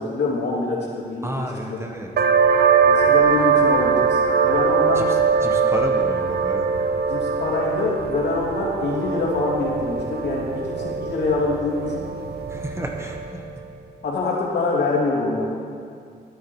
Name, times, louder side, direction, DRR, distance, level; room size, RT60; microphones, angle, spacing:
voice 1, 0.0-1.9 2.9-5.0 7.1-12.1 14.0-15.6, left 3 dB, 75° left, -4 dB, 2.9 m, -25 dB
voice 2, 1.2-2.1 4.9-6.7 12.5-13.4, right 1 dB, 15° right, 2 dB, 1.3 m, -31 dB
sound 1, 2.2-13.5, right 6 dB, 70° right, 0.7 m, -21 dB
12.5 x 10.0 x 4.6 m, 2.3 s
cardioid pair, 100°, 17 cm